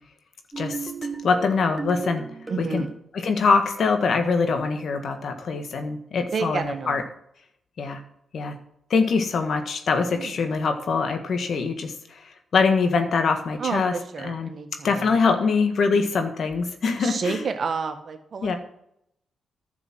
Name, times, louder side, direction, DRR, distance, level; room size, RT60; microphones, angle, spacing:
sound 1, 0.5-2.9, right 4 dB, 15° right, 2.1 m, -35 dB
voice 1, 0.6-0.9 1.2-2.3 2.7-2.9 3.1-7.0 7.8-8.0 8.3-8.5 8.9-13.9 14.2-14.5 14.8-17.4 18.4-18.6, left 4 dB, 65° left, 7 dB, 1.6 m, -23 dB
voice 2, 2.5-2.9 6.3-7.0 10.1-10.4 13.6-15.3 17.0-18.6, right 5 dB, 60° right, 7 dB, 1.6 m, -30 dB
10.5 x 7.0 x 6.2 m, 0.73 s
supercardioid pair, 50°, 0 cm